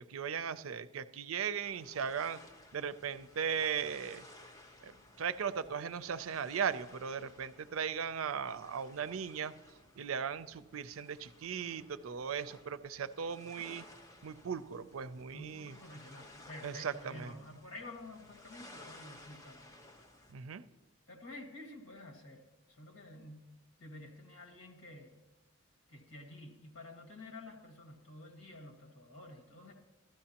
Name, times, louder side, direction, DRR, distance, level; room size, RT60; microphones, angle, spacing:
voice 1, 0.1-2.4 2.7-4.3 4.8-9.5 10.0-13.8 14.2-15.7 16.6-17.4 20.3-20.6, right 7 dB, 90° right, 14 dB, 0.5 m, -37 dB
sound 1, 1.6-20.3, left 1 dB, 15° left, 1.0 m, -57 dB
voice 2, 15.3-19.7 21.1-23.5 23.8-25.2 25.9-29.7, left 2 dB, 75° left, 3 dB, 1.9 m, -50 dB
15.0 x 12.5 x 2.9 m, 1.1 s
head